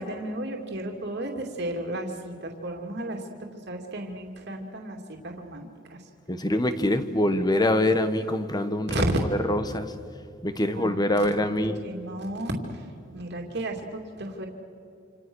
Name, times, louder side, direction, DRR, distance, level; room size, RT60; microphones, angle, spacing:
voice 1, 0.0-6.0 8.9-9.1 10.7-11.4 11.8-12.8 13.1-14.5, right 1 dB, 60° right, 1 dB, 2.8 m, -34 dB
voice 2, 6.3-8.9 9.3-9.9 10.4-11.8, left 1 dB, 20° left, 10 dB, 1.4 m, -24 dB
28.0 x 27.0 x 6.4 m, 2.6 s
head